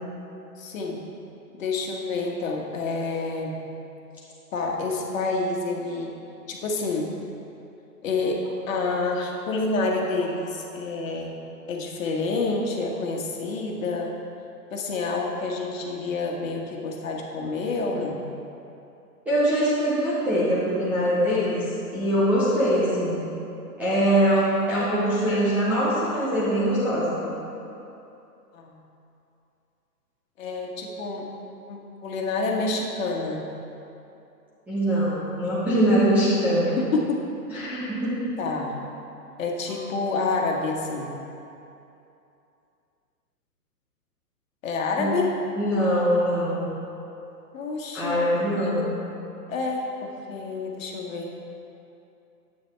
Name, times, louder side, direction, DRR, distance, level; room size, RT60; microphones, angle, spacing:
voice 1, 0.6-1.0 1.5-3.6 4.5-6.1 6.5-7.1 8.0-11.3 11.7-14.1 14.7-18.2 28.5-28.8 30.4-31.3 31.7-33.4 36.8-37.2 38.4-38.7 39.4-41.2 44.6-45.3 47.5-48.3 48.5-48.9 49.5-51.3, left 3 dB, 50° left, 0 dB, 1.5 m, -28 dB
voice 2, 19.3-21.6 21.9-23.2 23.8-27.2 34.7-36.8 37.5-38.3 45.0-45.2 45.5-46.7 47.9-48.8, equal, 5° right, -12 dB, 0.5 m, -23 dB
10.5 x 8.7 x 3.3 m, 2.8 s
hypercardioid pair, 130°, 49 cm